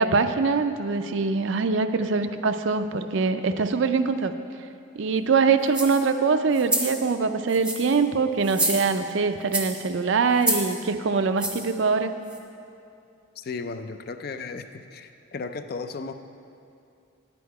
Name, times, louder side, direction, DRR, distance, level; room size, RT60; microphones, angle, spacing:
voice 1, 0.0-4.3 4.9-12.1, right 4 dB, 65° right, 9 dB, 0.4 m, -23 dB
sound 1, 5.7-6.0 6.5-7.0 7.5-8.0 8.4-9.1 9.5-9.8 10.4-10.7 11.4-11.7 12.3-12.4, right 1 dB, 5° right, 0.7 m, -28 dB
voice 2, 13.4-16.1, left 4 dB, 45° left, 9 dB, 0.4 m, -35 dB
10.0 x 8.4 x 4.7 m, 2.5 s
head